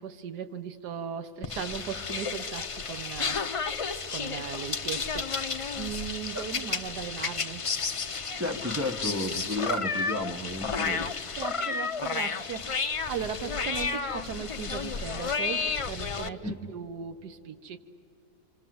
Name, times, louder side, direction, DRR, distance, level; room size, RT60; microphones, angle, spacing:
voice 1, 0.0-5.3 5.8-7.7 11.4-17.8, right 7 dB, 85° right, 10 dB, 1.6 m, -38 dB
sound 1, 1.4-16.3, left 5 dB, 60° left, 0.3 m, -32 dB
voice 2, 8.4-11.1 16.4-16.7, left 1 dB, 10° right, 5 dB, 1.0 m, -32 dB
28.5 x 25.5 x 7.7 m, 2.6 s
omnidirectional pair, 1.7 m